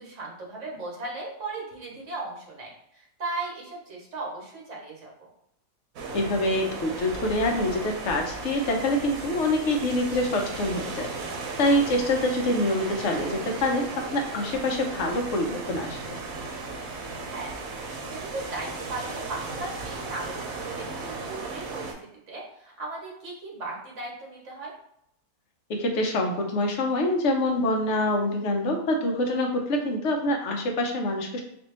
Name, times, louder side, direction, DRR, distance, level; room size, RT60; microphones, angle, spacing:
voice 1, 0.0-5.3 17.1-24.7, right 2 dB, 65° right, -2 dB, 1.4 m, -37 dB
sound 1, 6.0-21.9, right 3 dB, 85° right, 1.1 m, -36 dB
voice 2, 6.1-11.1 11.6-16.2 25.7-31.4, left 1 dB, 65° left, 2 dB, 1.0 m, -25 dB
4.2 x 2.6 x 2.9 m, 0.74 s
omnidirectional pair, 1.4 m